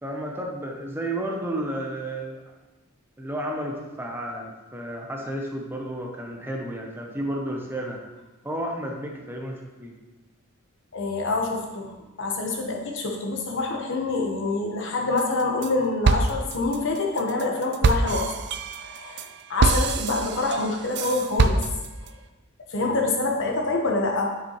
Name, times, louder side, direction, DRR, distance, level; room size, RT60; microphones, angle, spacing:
voice 1, 0.0-2.5 3.2-8.0 8.4-9.9, right 1 dB, 10° right, 0 dB, 0.8 m, -32 dB
voice 2, 10.9-11.9 12.2-18.3 18.8-19.2 19.5-21.6 22.7-24.3, left 3 dB, 60° left, 1 dB, 1.2 m, -26 dB
sound 1, 15.2-15.7 16.0-22.1, right 4 dB, 55° right, 0.4 m, -25 dB
7.4 x 7.2 x 3.1 m, 1.1 s
head